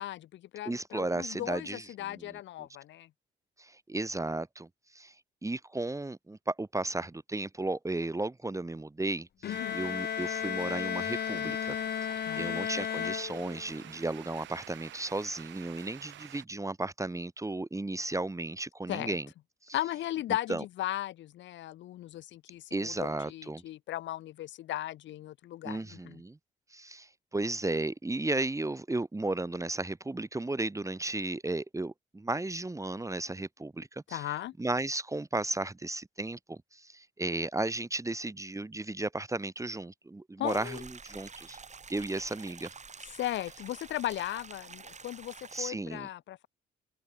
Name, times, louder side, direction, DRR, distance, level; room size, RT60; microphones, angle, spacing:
voice 1, 0.0-3.1 9.4-9.8 12.2-12.6 18.9-19.2 19.7-26.2 34.1-34.5 40.4-40.8 43.1-46.5, left 14 dB, 75° left, 0.8 m, -37 dB
voice 2, 0.7-2.4 3.6-5.1 5.4-19.3 19.7-19.8 20.5-20.6 22.7-23.6 25.6-26.4 26.7-34.3 34.6-41.6 41.9-42.7 45.5-46.1, right 2 dB, 15° right, 2.0 m, -34 dB
Bowed string instrument, 9.4-13.9, left 9 dB, 60° left, 1.7 m, -34 dB
sound 1, 9.5-16.5, right 13 dB, 80° right, 3.8 m, -49 dB
sound 2, 40.5-45.7, right 5 dB, 40° right, 6.4 m, -48 dB
cardioid pair, 75°, 19 cm